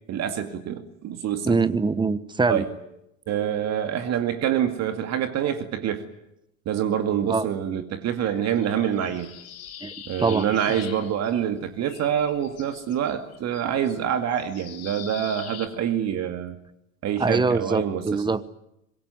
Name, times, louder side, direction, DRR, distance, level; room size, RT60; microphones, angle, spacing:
voice 1, 0.1-1.6 2.5-2.7 3.3-6.0 6.7-9.3 10.1-16.6 17.0-18.2, right 9 dB, 35° right, 9 dB, 2.3 m, -26 dB
voice 2, 1.4-2.6 7.3-7.4 9.8-9.9 10.2-10.5 17.2-18.5, right 4 dB, 10° right, 16 dB, 1.2 m, -23 dB
sound 1, 8.2-11.6 11.8-15.7, left 9 dB, 35° left, 4.9 m, -43 dB
25.0 x 22.0 x 9.4 m, 0.81 s
figure-of-eight pair, 80°, 42 cm